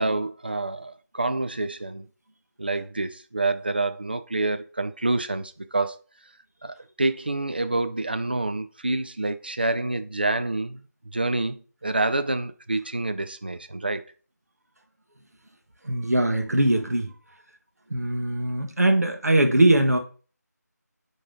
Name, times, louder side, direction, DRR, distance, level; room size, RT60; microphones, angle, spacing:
voice 1, 0.0-2.1 2.6-6.0 6.6-10.9 11.1-14.0, right 2 dB, 35° right, 0.4 m, -27 dB
voice 2, 15.8-17.1 17.9-20.0, right 1 dB, 60° right, 1.3 m, -21 dB
9.3 x 3.3 x 3.6 m
figure-of-eight pair, 165°, 10 cm